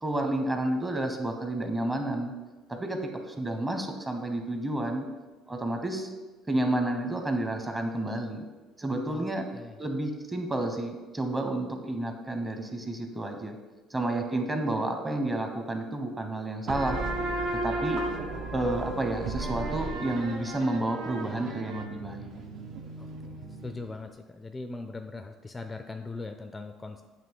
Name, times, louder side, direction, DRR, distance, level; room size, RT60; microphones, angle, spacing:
voice 1, 0.0-2.3 2.7-3.0 3.3-5.0 5.5-6.1 6.5-8.4 8.8-9.4 9.8-13.6 13.9-17.0 17.6-18.0 18.5-22.3, right 1 dB, 20° right, 4 dB, 0.9 m, -30 dB
voice 2, 9.1-9.8 23.0-23.3 23.6-27.0, left 3 dB, 20° left, 7 dB, 0.4 m, -40 dB
sound 1, 16.7-24.0, right 2 dB, 65° right, 0.8 m, -34 dB
7.5 x 3.0 x 4.6 m, 1.2 s
supercardioid pair, 90°, 0 cm